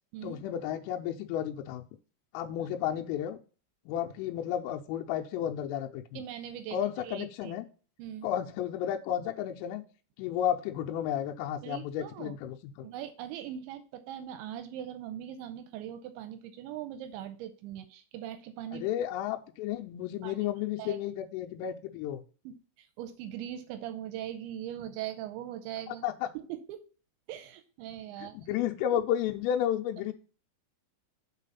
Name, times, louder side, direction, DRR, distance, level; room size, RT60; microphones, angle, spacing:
voice 1, 0.2-1.8 2.3-3.4 3.9-6.2 6.7-7.6 8.2-9.8 10.2-12.9 18.7-22.2 26.0-26.3 28.2-30.1, left 10 dB, 85° left, 4 dB, 3.3 m, -32 dB
voice 2, 6.2-6.8 7.0-7.5 8.0-8.3 11.6-12.4 12.8-18.8 20.2-20.4 20.8-21.0 22.5-26.0 26.3-26.8 27.3-28.4, right 11 dB, 85° right, 10 dB, 2.7 m, -40 dB
8.3 x 4.1 x 5.4 m, 0.38 s
omnidirectional pair, 5.7 m